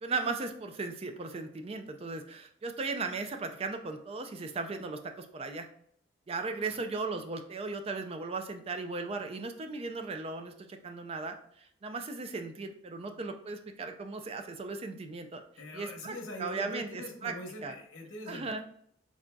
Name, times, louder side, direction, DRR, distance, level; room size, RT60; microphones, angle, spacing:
voice 1, 0.0-5.7 6.3-15.4 15.7-17.3 17.6-17.7 18.3-18.6, right 3 dB, 30° right, 6 dB, 0.3 m, -37 dB
voice 2, 15.6-18.6, left 1 dB, 90° left, 2 dB, 0.9 m, -43 dB
3.8 x 3.5 x 2.2 m, 0.67 s
head